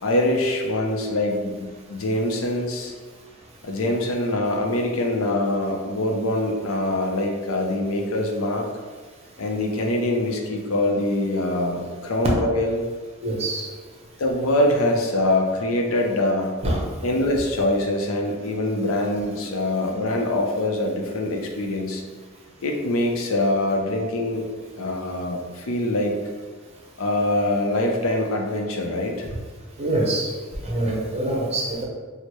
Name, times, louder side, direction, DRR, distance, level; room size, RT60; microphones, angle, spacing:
voice 1, 0.0-2.9 3.6-8.7 9.4-12.8 14.2-16.5 17.0-22.0 22.6-24.4 24.7-26.2 27.0-29.3, left 1 dB, 80° left, 2 dB, 0.5 m, -24 dB
voice 2, 13.2-13.7 16.6-17.1 29.2-29.3 29.8-30.3 30.6-31.8, right 1 dB, 30° right, -3 dB, 0.7 m, -25 dB
4.4 x 2.0 x 3.0 m, 1.5 s
head